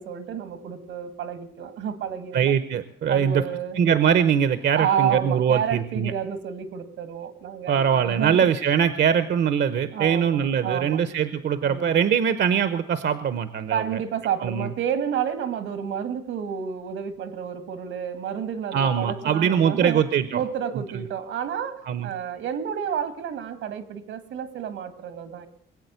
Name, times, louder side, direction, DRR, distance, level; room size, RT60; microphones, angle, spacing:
voice 1, 0.0-2.5 3.1-3.8 4.7-8.5 9.9-11.1 11.6-12.0 13.7-20.0 20.3-25.5, right 8 dB, 85° right, 12 dB, 1.8 m, -30 dB
voice 2, 2.3-3.4 3.8-6.1 7.7-14.0 14.4-14.7 18.7-20.4 21.8-22.1, right 8 dB, 60° right, 13 dB, 0.9 m, -22 dB
21.0 x 8.3 x 8.1 m, 0.68 s
cardioid pair, 90°, 20 cm